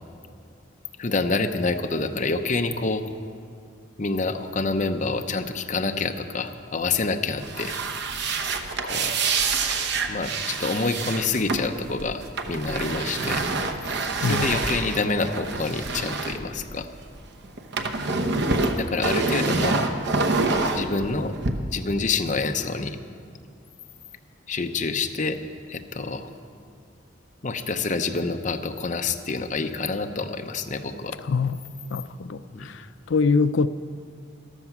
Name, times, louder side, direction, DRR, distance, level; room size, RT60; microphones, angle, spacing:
voice 1, 1.0-3.0 4.0-7.8 8.8-9.1 10.1-13.4 14.2-16.9 18.7-19.8 20.7-21.3 21.7-23.0 24.5-25.4 25.7-26.3 27.4-31.2 32.5-32.7, left 3 dB, 40° left, 0.7 m, -27 dB
sound 1, 7.4-17.2 17.4-21.5, right 3 dB, 55° right, 0.9 m, -27 dB
voice 2, 31.9-32.4 33.1-33.7, left 4 dB, 65° left, 0.4 m, -22 dB
13.5 x 12.5 x 6.0 m
head